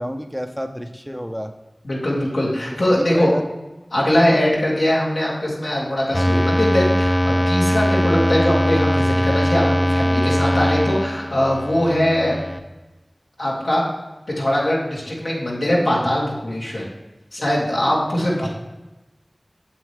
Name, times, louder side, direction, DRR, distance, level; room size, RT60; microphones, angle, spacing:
voice 1, 0.0-1.5 3.0-3.5 18.4-18.5, equal, ahead, 6 dB, 0.7 m, -29 dB
voice 2, 1.8-3.3 3.9-12.4 13.4-13.8 14.4-16.9 17.3-18.5, left 1 dB, 85° left, -5 dB, 2.7 m, -21 dB
sound 1, 6.1-12.6, equal, 30° left, 0.7 m, -20 dB
8.3 x 7.5 x 3.6 m, 1.1 s
wide cardioid pair, 45°, 0 cm